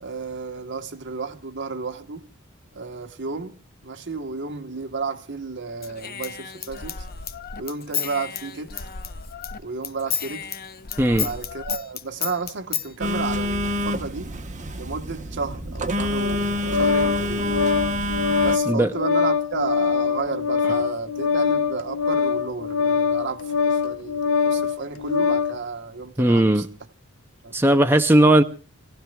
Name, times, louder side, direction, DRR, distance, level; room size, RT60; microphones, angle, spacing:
voice 1, 0.0-2.3 2.7-7.1 7.6-8.9 9.6-10.5 11.2-14.4 14.8-17.7 18.4-26.6 27.4-27.6, right 4 dB, 60° right, 1.2 m, -32 dB
Human voice / Scissors, 5.8-9.6 9.8-12.9, left 8 dB, 45° left, 0.8 m, -32 dB
voice 2, 11.0-11.3 18.7-18.9 26.2-26.7 27.5-28.4, right 1 dB, 10° right, 0.7 m, -17 dB
Telephone, 13.0-18.6, left 1 dB, 35° right, 1.1 m, -27 dB
Organ, 16.2-25.6, left 5 dB, 80° left, 0.7 m, -23 dB
29.0 x 17.0 x 2.3 m
head